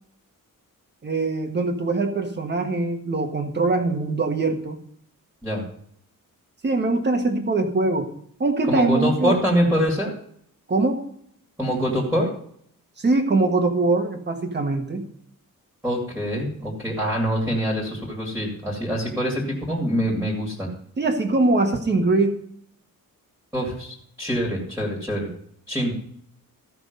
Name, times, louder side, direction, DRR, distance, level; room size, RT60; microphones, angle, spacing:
voice 1, 1.0-4.8 6.6-8.1 8.4-9.4 10.7-11.0 13.0-15.1 21.0-22.4, right 3 dB, 30° right, 4 dB, 1.5 m, -22 dB
voice 2, 8.7-10.1 11.6-12.3 15.8-20.7 23.5-25.3 25.7-25.9, equal, 5° right, -3 dB, 2.5 m, -24 dB
15.0 x 6.0 x 5.3 m, 0.66 s
wide cardioid pair, 175°, 34 cm